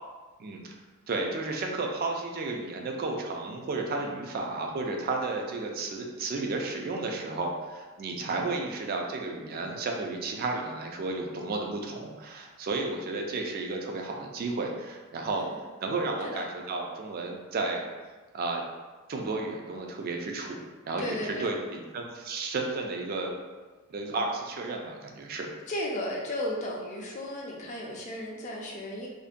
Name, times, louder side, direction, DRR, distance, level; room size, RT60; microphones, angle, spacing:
voice 1, 0.4-0.7 1.1-15.5 15.8-17.8 18.3-18.6 19.1-20.6 20.9-23.3 23.9-25.5, right 3 dB, 45° right, 2 dB, 0.3 m, -32 dB
voice 2, 21.0-21.5 25.7-29.1, left 1 dB, 35° left, -2 dB, 0.4 m, -34 dB
2.5 x 2.1 x 2.4 m, 1.3 s
head